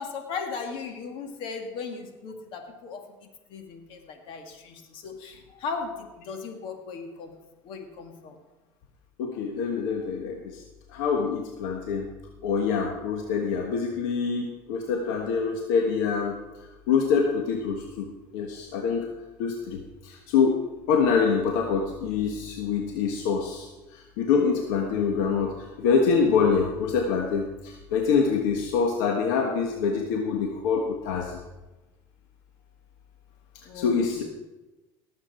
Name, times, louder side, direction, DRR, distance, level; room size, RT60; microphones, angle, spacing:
voice 1, 0.0-3.1 3.5-7.3 7.6-8.4 33.6-34.2, left 5 dB, 65° left, 5 dB, 2.1 m, -37 dB
voice 2, 9.2-10.6 10.9-12.1 12.4-16.4 16.9-19.1 19.4-20.6 20.9-31.4 33.7-34.2, left 5 dB, 85° left, 2 dB, 1.4 m, -25 dB
18.5 x 7.7 x 4.4 m, 1.1 s
supercardioid pair, 105°, 10 cm